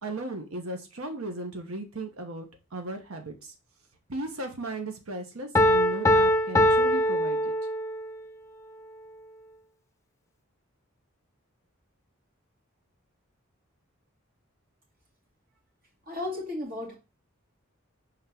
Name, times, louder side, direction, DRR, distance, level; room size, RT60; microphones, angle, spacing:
voice 1, 0.0-3.5 4.1-7.5, right 2 dB, 85° right, 5 dB, 1.2 m, -36 dB
Piano, 5.6-8.1, left 1 dB, 15° left, 0.4 m, -22 dB
voice 2, 16.1-17.0, left 2 dB, 45° right, -1 dB, 2.1 m, -34 dB
5.2 x 3.7 x 5.8 m, 0.29 s
head